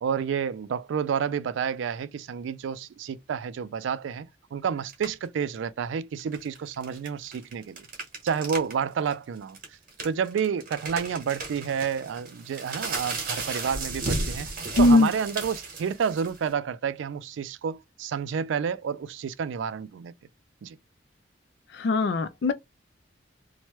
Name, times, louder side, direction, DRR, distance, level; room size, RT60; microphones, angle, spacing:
voice 1, 0.0-7.9 8.2-9.6 10.0-14.5 14.8-20.1 20.6-20.8, right 7 dB, 75° right, 0.3 m, -30 dB
sound 1, 4.9-5.3 6.2-8.7 9.1-9.2 9.5-16.5, right 3 dB, 45° right, 1.2 m, -34 dB
voice 2, 14.8-15.1 21.7-22.5, left 2 dB, 60° left, 0.3 m, -20 dB
3.0 x 2.2 x 2.9 m
head